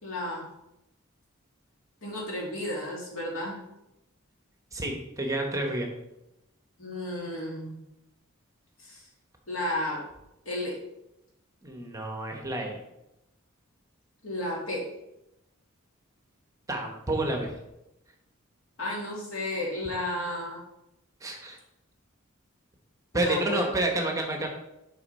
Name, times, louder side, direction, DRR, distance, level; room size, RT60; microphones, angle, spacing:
voice 1, 0.0-0.5 2.0-3.6 6.8-7.8 8.8-9.0 9.5-10.0 10.5-10.8 14.2-14.9 18.8-20.6 23.1-23.6, left 1 dB, 75° left, -3 dB, 2.3 m, -33 dB
voice 2, 4.7-5.9 11.6-12.8 16.7-17.6 21.2-21.6 23.1-24.5, right 2 dB, 15° right, 2 dB, 1.0 m, -29 dB
6.8 x 5.4 x 4.1 m, 0.89 s
head